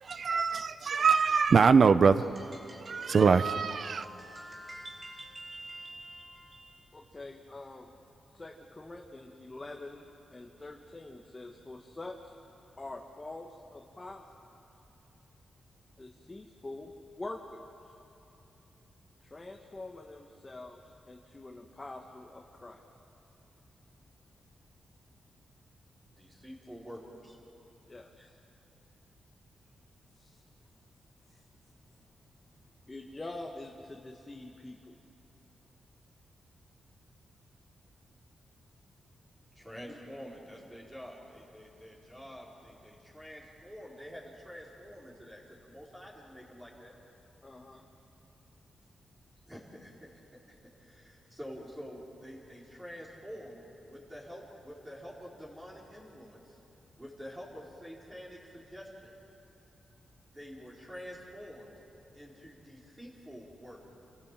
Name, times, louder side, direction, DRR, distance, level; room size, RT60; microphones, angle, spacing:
voice 1, 0.0-2.6 2.8-4.1, right 5 dB, 55° right, 0.8 m, -24 dB
sound 1, 2.0-6.8, right 1 dB, 30° right, 3.2 m, -48 dB
voice 2, 6.9-7.9 8.3-10.0 10.3-12.3 12.8-14.2 16.0-17.6 19.2-22.8 27.9-28.3 30.1-30.4 31.3-31.4 32.9-34.9 47.4-47.8, left 2 dB, 25° left, 1.5 m, -45 dB
voice 3, 26.2-27.4 28.2-28.3 39.5-46.9 47.7-47.8 49.5-50.1 50.5-56.6 57.0-59.2 60.3-61.7 62.1-63.8, equal, 15° right, 4.7 m, -47 dB
27.5 x 15.5 x 7.7 m
cardioid pair, 75°, 0 cm